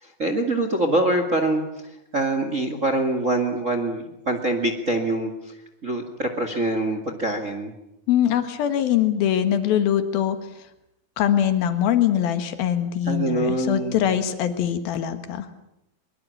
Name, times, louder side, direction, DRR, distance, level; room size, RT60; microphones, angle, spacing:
voice 1, 0.0-7.7 13.1-13.9, right 2 dB, 30° right, 7 dB, 1.8 m, -25 dB
voice 2, 8.1-10.4 11.2-15.5, left 10 dB, 85° left, 9 dB, 3.4 m, -22 dB
23.5 x 23.0 x 8.6 m, 0.84 s
omnidirectional pair, 4.1 m